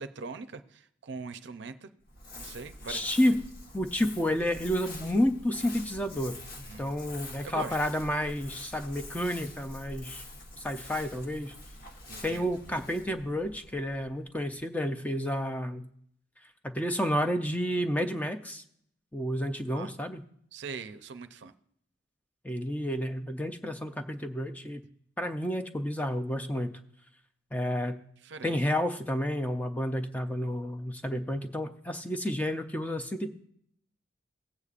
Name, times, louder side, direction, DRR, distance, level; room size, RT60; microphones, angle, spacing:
voice 1, 0.0-1.9 2.4-3.1 6.6-7.0 7.4-7.8 12.1-12.5 19.7-19.9 20.5-21.5 28.2-28.6, right 4 dB, 60° right, 10 dB, 0.5 m, -41 dB
Crumpling crinkling, 2.0-14.5, left 2 dB, 50° left, 1.2 m, -46 dB
voice 2, 2.9-3.4 3.7-10.2 10.6-11.5 12.2-15.9 16.6-18.6 19.1-20.2 22.4-24.8 25.2-26.7 27.5-28.0 28.4-33.3, equal, 10° left, 7 dB, 0.4 m, -30 dB
17.5 x 8.2 x 2.5 m, 0.68 s
head